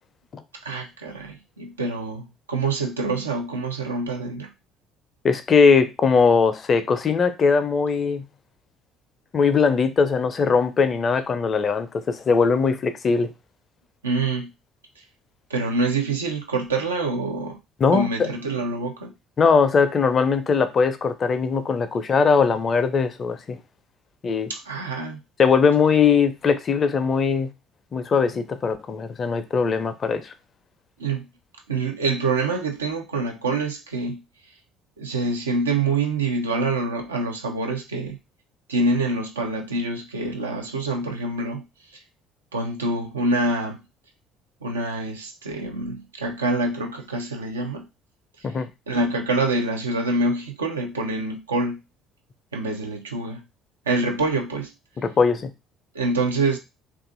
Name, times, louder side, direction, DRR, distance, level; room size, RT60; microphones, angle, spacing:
voice 1, 0.6-4.5 14.0-14.5 15.5-17.6 17.9-19.1 24.5-25.2 31.0-31.3 31.7-34.2 35.0-38.2 38.7-41.6 42.5-43.8 44.6-47.9 48.4-48.5 48.9-51.8 52.5-53.4 53.9-54.7 55.9-56.6, right 3 dB, 85° right, 0.4 m, -26 dB
voice 2, 5.2-8.2 9.3-13.3 17.8-18.3 19.4-23.6 24.2-24.5 25.4-27.5 27.9-30.3 48.4-48.7 55.0-55.5, left 5 dB, 40° left, 0.4 m, -20 dB
2.5 x 2.3 x 2.5 m
figure-of-eight pair, 50°, 0 cm